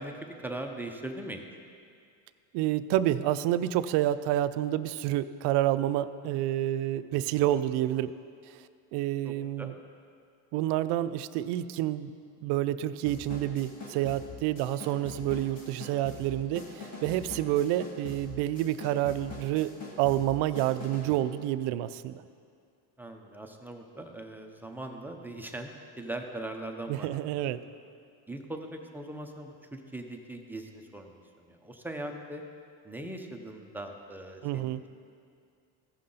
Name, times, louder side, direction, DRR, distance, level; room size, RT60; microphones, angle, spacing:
voice 1, 0.0-1.4 9.2-9.7 23.0-27.4 28.3-32.4 32.8-34.9, right 1 dB, 5° right, 3 dB, 0.5 m, -40 dB
voice 2, 2.5-8.1 8.9-9.7 10.5-12.1 12.4-19.7 20.0-22.2 26.9-27.6 34.4-34.8, right 13 dB, 60° right, 12 dB, 0.5 m, -28 dB
sound 1, 13.1-21.2, left 3 dB, 35° left, 2.0 m, -44 dB
15.5 x 5.6 x 3.8 m, 2.3 s
cardioid pair, 125°, 46 cm